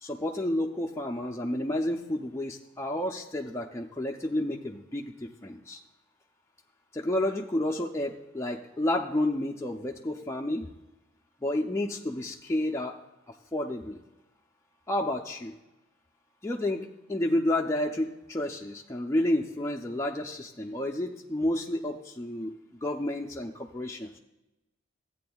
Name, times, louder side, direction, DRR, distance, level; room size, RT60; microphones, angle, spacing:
voice 1, 0.0-5.8 6.9-10.7 11.4-13.0 13.5-14.0 14.9-15.5 16.4-22.5 22.8-24.2, left 1 dB, 15° left, 0 dB, 0.4 m, -30 dB
14.5 x 8.6 x 2.3 m, 0.98 s
head